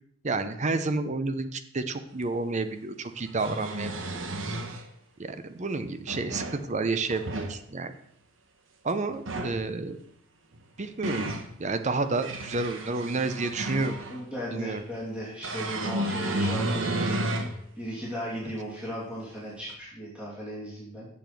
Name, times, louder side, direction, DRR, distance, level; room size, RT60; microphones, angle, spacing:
voice 1, 0.2-3.9 4.2-4.3 5.2-7.9 8.8-10.0 10.8-11.3 11.6-13.9 14.5-14.8 18.3-18.5, right 3 dB, 35° right, 10 dB, 0.7 m, -30 dB
sound 1, 2.2-2.3 3.2-4.8 5.8-6.6 7.0-7.5 9.1-9.6 10.5-11.5 12.0-14.2 15.4-17.5 18.1-18.2 19.7-19.8, right 1 dB, 75° right, 1.1 m, -32 dB
voice 2, 14.1-17.1 17.4-21.1, equal, 5° right, -7 dB, 2.8 m, -36 dB
7.1 x 7.0 x 6.0 m, 0.67 s
head